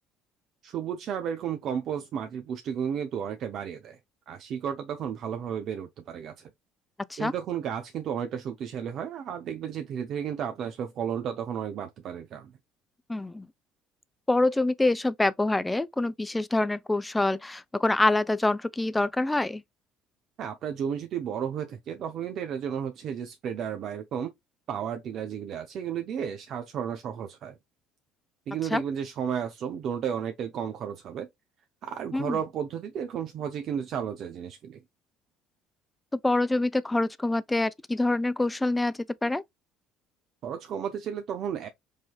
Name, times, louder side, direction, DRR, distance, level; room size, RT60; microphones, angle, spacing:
voice 1, 0.6-4.0 4.3-6.5 7.2-12.5 20.4-24.3 24.7-27.6 28.5-31.3 31.8-34.8 40.4-41.7, right 8 dB, 55° right, 0.5 m, -33 dB
voice 2, 13.1-13.5 14.3-19.6 28.7-28.8 32.1-32.4 36.1-39.4, left 2 dB, 15° left, 0.4 m, -26 dB
4.9 x 2.7 x 2.3 m
hypercardioid pair, 60°, 0 cm